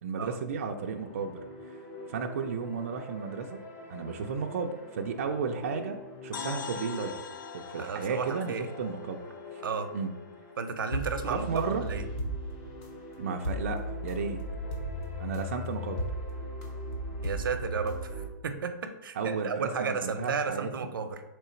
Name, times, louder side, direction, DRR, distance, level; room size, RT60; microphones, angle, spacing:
voice 1, 0.0-1.8 2.1-3.6 3.9-7.2 7.5-9.2 9.5-9.6 9.9-10.1 11.3-11.8 13.2-14.4 15.2-16.0 19.2-20.9, right 5 dB, 40° right, 3 dB, 0.3 m, -34 dB
sound 1, 0.8-18.3, equal, 20° left, 0.5 m, -39 dB
sound 2, 6.3-10.3, left 6 dB, 70° left, 0.5 m, -43 dB
voice 2, 7.8-8.7 9.6-9.9 10.6-12.0 17.2-21.2, right 5 dB, 90° right, 8 dB, 0.6 m, -33 dB
3.8 x 3.1 x 4.3 m, 0.97 s
hypercardioid pair, 175°, 11 cm